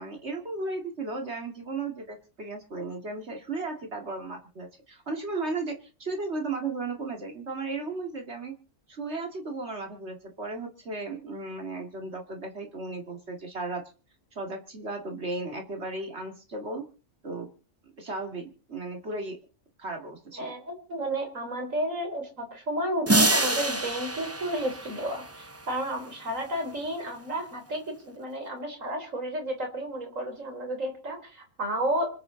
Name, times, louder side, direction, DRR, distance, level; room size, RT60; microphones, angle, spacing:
voice 1, 0.0-5.7 6.0-8.5 8.9-13.8 14.3-16.8 17.2-17.5 18.0-19.4 19.8-20.4, right 3 dB, 55° right, 3 dB, 2.7 m, -35 dB
voice 2, 20.4-32.1, right 1 dB, 85° right, 4 dB, 4.1 m, -32 dB
sound 1, 23.1-25.8, right 2 dB, 15° right, 0.7 m, -26 dB
26.0 x 8.8 x 4.0 m, 0.38 s
omnidirectional pair, 1.3 m